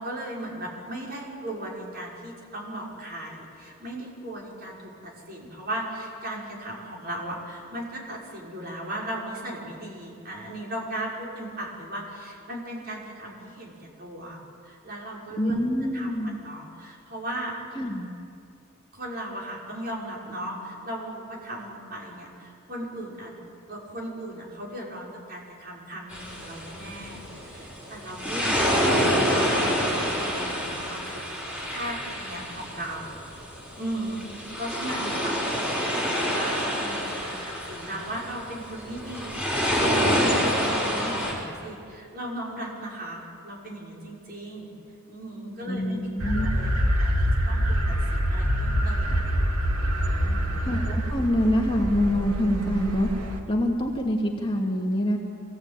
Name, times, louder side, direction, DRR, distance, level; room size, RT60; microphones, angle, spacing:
voice 1, 0.0-15.6 15.9-17.5 18.9-23.3 23.7-31.2 31.7-44.7 45.1-46.0 46.3-46.7 47.0-47.2 47.5-49.4 50.2-50.7, right 1 dB, 45° right, -3 dB, 5.8 m, -37 dB
voice 2, 15.4-16.4 17.8-18.1 45.7-46.5 50.6-53.1 53.5-55.2, equal, 25° left, 0 dB, 2.4 m, -25 dB
sound 1, 26.1-41.3, equal, 5° right, 5.5 m, -27 dB
sound 2, 46.2-53.4, equal, 85° right, 2.5 m, -25 dB
26.0 x 18.0 x 9.1 m, 2.4 s
head